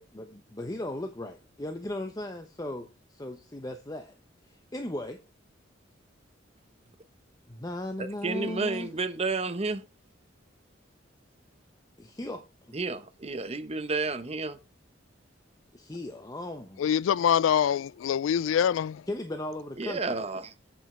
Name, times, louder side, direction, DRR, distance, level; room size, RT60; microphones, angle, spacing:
voice 1, 0.0-4.1 4.5-5.2 7.5-8.9 12.0-12.4 15.7-16.9 19.1-20.3, left 1 dB, 20° left, 0.8 m, -37 dB
voice 2, 8.0-9.8 12.7-14.6 19.8-20.5, right 3 dB, 35° right, 0.9 m, -31 dB
voice 3, 16.8-19.0, left 8 dB, 90° left, 0.3 m, -24 dB
8.3 x 7.5 x 3.2 m
head